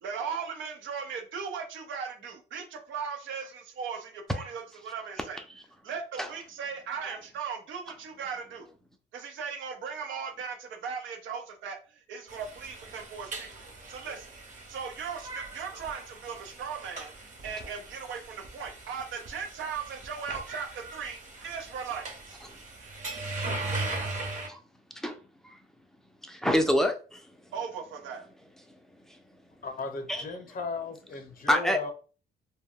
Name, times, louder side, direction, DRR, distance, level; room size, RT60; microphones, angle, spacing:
voice 1, 0.0-5.4 5.8-8.7 9.1-13.5 13.9-14.3 14.7-17.1 17.4-22.4 27.5-28.3, right 6 dB, 75° right, 0.6 m, -38 dB
sound 1, 12.3-24.5, right 2 dB, 40° right, 0.9 m, -39 dB
voice 2, 26.2-27.2 29.1-29.2 30.1-30.2 31.5-31.9, equal, ahead, 0.5 m, -27 dB
voice 3, 29.6-31.9, left 4 dB, 45° left, 0.7 m, -36 dB
2.2 x 2.2 x 3.5 m
cardioid pair, 90°, 20 cm